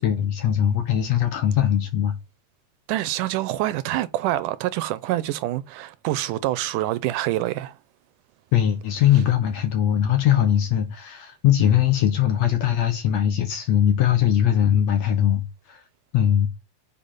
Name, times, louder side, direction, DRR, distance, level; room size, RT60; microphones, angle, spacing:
voice 1, 0.0-2.1 8.5-15.4 15.7-15.8 16.1-16.5, left 10 dB, 65° left, 1.8 m, -20 dB
voice 2, 2.9-7.8, right 15 dB, 80° right, 2.0 m, -26 dB
6.7 x 5.2 x 5.5 m
omnidirectional pair, 3.9 m